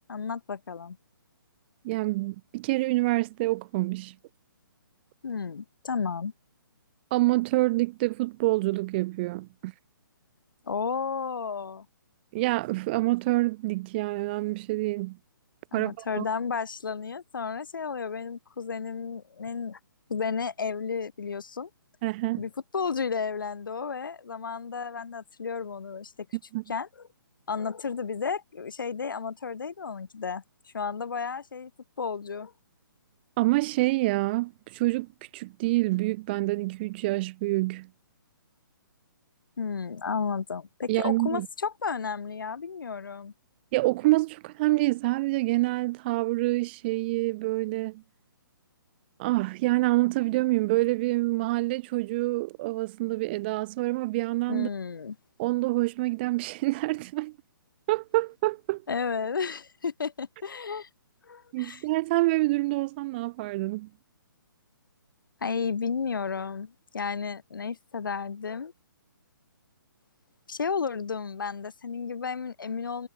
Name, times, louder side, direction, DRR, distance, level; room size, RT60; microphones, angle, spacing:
voice 1, 0.1-1.0 5.2-6.3 10.6-11.9 15.7-19.8 20.1-21.7 22.4-26.1 26.7-26.9 27.5-31.7 32.0-32.5 39.6-43.3 54.5-55.2 58.9-60.9 61.2-61.8 65.4-68.7 70.5-73.1, left 5 dB, 65° left, 4.5 m, -32 dB
voice 2, 1.8-4.1 7.1-9.7 12.3-15.2 15.7-16.2 22.0-22.4 26.5-26.6 33.4-37.9 40.9-41.5 43.7-48.0 49.2-54.7 55.4-57.3 57.9-58.8 61.5-63.9, right 20 dB, 30° right, 0.7 m, -27 dB
figure-of-eight pair, 135°, 12 cm